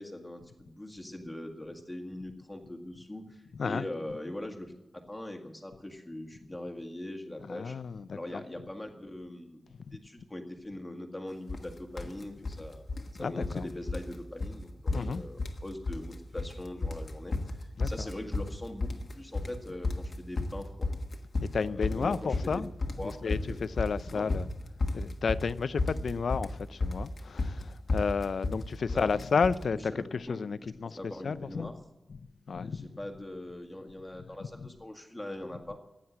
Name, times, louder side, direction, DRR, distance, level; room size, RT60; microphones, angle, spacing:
voice 1, 0.0-7.8 8.1-9.6 9.9-12.8 13.1-20.9 21.5-22.6 23.0-23.6 24.1-24.3 28.9-29.1 29.7-29.8 30.3-30.4 30.6-30.7 31.0-31.7 32.6-35.8, left 1 dB, 10° left, 1.9 m, -41 dB
voice 2, 3.5-3.9 7.5-8.4 9.9-10.0 13.2-13.7 14.9-15.2 17.8-17.9 21.4-22.7 23.0-24.5 24.9-31.7 32.1-32.2 32.5-32.9 34.6-34.7, left 5 dB, 65° left, 0.5 m, -32 dB
sound 1, 11.5-11.7 12.0-12.6 12.9-13.6 13.9-14.1 14.4-14.6 14.9-15.6 15.9-16.5 16.8-29.6, left 2 dB, 40° left, 1.4 m, -32 dB
15.5 x 9.9 x 7.6 m
wide cardioid pair, 165°, 0 cm